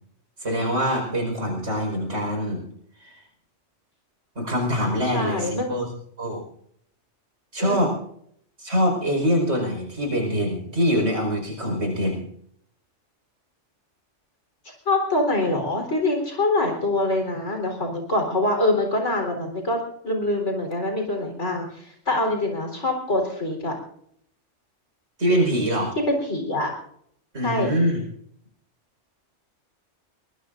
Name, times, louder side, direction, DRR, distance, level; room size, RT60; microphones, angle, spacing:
voice 1, 0.4-2.6 3.0-3.2 4.4-5.9 6.2-6.4 7.5-8.0 8.6-12.2 25.2-25.9 27.3-28.0, equal, 85° right, 1 dB, 5.2 m, -24 dB
voice 2, 5.1-5.7 7.6-7.8 14.9-23.7 26.1-26.7 27.4-27.7, left 2 dB, 75° left, 3 dB, 4.2 m, -24 dB
22.5 x 20.5 x 2.6 m, 0.68 s
omnidirectional pair, 1.2 m